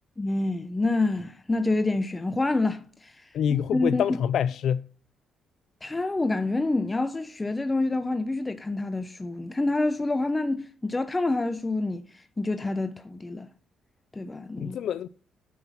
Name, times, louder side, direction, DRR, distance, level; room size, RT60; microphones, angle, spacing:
voice 1, 0.2-3.3 3.7-4.2 5.8-13.5 14.1-14.8, left 2 dB, 20° left, 0.7 m, -27 dB
voice 2, 3.3-4.9 14.6-15.1, left 9 dB, 70° left, 0.3 m, -26 dB
9.3 x 5.9 x 7.1 m
cardioid pair, 90°, 0 cm